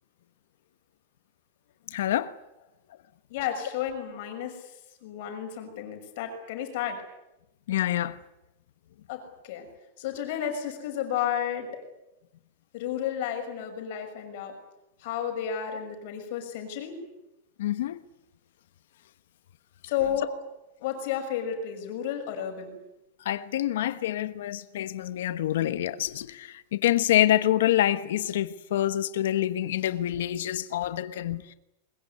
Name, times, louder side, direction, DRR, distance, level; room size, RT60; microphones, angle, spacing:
voice 1, 1.9-2.3 7.7-8.2 17.6-18.0 23.2-31.5, left 13 dB, 70° left, 1.1 m, -26 dB
voice 2, 3.3-4.6 5.0-7.0 9.1-9.7 10.0-11.8 12.7-14.5 15.0-17.1 19.9-20.3 20.8-22.8, left 9 dB, 45° left, 6.2 m, -32 dB
22.5 x 21.5 x 9.7 m
supercardioid pair, 175°, 0 cm